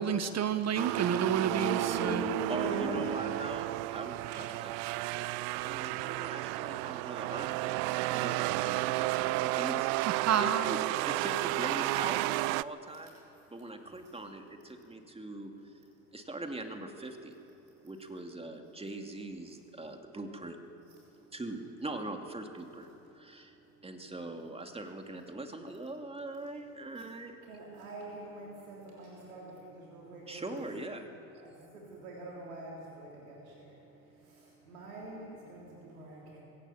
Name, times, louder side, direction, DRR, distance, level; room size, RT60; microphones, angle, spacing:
voice 1, 0.0-2.2 10.1-10.9, right 8 dB, 40° right, 12 dB, 1.1 m, -30 dB
sound 1, 0.8-12.6, right 20 dB, 65° right, 0.5 m, -32 dB
voice 2, 1.4-3.0 27.5-30.5 31.4-33.7 34.3-36.4, right 1 dB, 80° right, -3 dB, 3.4 m, -42 dB
voice 3, 2.5-4.7 5.5-7.8 8.1-10.8 11.0-13.2 13.5-15.7 16.1-17.4 17.8-20.6 21.3-22.9 23.1-23.6 23.8-27.4 30.3-31.1, right 2 dB, 15° right, 4 dB, 2.5 m, -41 dB
23.0 x 17.0 x 7.2 m, 3.0 s
hypercardioid pair, 65°, 42 cm